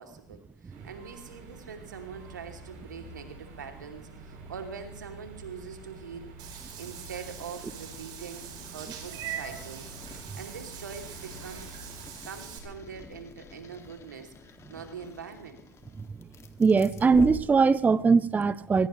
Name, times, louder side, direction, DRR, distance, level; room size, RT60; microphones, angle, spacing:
voice 1, 0.0-6.3 6.8-9.9 10.3-12.0 12.2-15.6, right 6 dB, 90° right, 2.8 m, -43 dB
sound 1, 0.7-12.1, right 2 dB, 65° right, 7.6 m, -48 dB
sound 2, 6.4-18.0, left 5 dB, 30° left, 2.2 m, -47 dB
Meow / Water / Bathtub (filling or washing), 6.4-12.6, right 9 dB, 45° right, 5.1 m, -43 dB
voice 2, 16.6-18.9, right 4 dB, 15° right, 0.6 m, -21 dB
22.0 x 20.0 x 3.2 m
hypercardioid pair, 90°, 10 cm